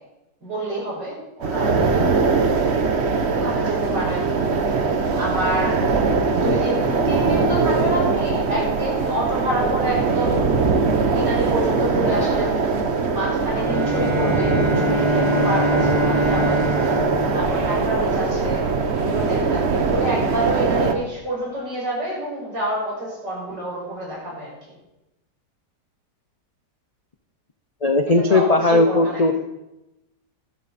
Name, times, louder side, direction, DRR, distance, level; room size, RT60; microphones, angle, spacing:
voice 1, 0.4-2.2 3.3-4.4 5.1-5.8 6.3-10.7 11.1-12.6 13.1-16.7 17.3-18.7 18.9-24.7 28.2-29.4, right 1 dB, 80° right, -5 dB, 6.5 m, -28 dB
sound 1, 1.4-20.9, right 4 dB, 45° right, 1.2 m, -21 dB
Bowed string instrument, 13.6-18.4, equal, 20° right, 1.2 m, -25 dB
voice 2, 27.8-29.3, left 2 dB, 60° left, 6 dB, 0.3 m, -17 dB
14.0 x 11.5 x 4.2 m, 0.93 s
omnidirectional pair, 1.8 m